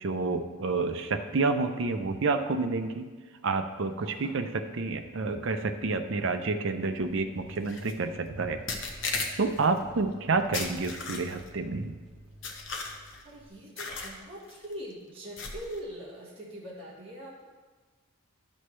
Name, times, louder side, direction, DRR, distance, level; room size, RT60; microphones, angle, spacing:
voice 1, 0.0-3.1 3.4-8.6 9.4-11.9, right 3 dB, 55° right, 7 dB, 0.5 m, -29 dB
voice 2, 4.0-4.4 9.9-10.1 13.2-17.4, equal, 25° right, -7 dB, 1.4 m, -42 dB
sound 1, 6.9-13.5, equal, 5° right, 1.8 m, -51 dB
sound 2, 7.7-7.9 8.7-9.7 10.5-11.5 12.4-13.2 13.8-14.2 14.5-14.7 15.4-15.8, left 4 dB, 55° left, 0.9 m, -35 dB
11.0 x 6.4 x 3.2 m, 1.4 s
head